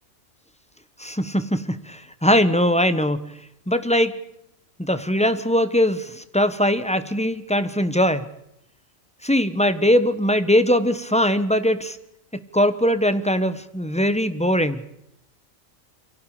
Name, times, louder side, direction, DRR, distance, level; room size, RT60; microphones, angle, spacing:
voice 1, 1.0-3.3 3.7-4.1 4.8-8.3 9.2-12.0 12.5-14.8, equal, 5° left, 11 dB, 1.3 m, -21 dB
29.0 x 24.5 x 5.1 m, 0.78 s
omnidirectional pair, 1.3 m